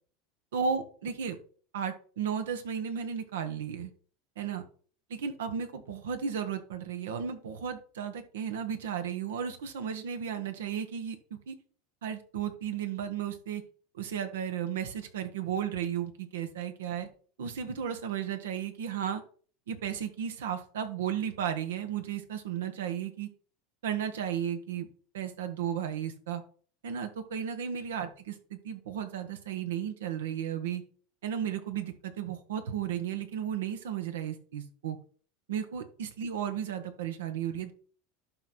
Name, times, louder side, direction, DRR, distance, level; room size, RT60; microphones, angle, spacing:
voice 1, 0.5-1.4 1.7-3.9 4.4-4.6 5.1-11.5 12.0-13.6 13.9-17.1 17.4-19.2 19.7-23.3 23.8-24.9 25.1-26.4 26.8-30.8 31.2-35.0 35.5-37.7, right 8 dB, 85° right, 8 dB, 1.4 m, -34 dB
11.5 x 4.1 x 4.5 m, 0.43 s
supercardioid pair, 105°, 0 cm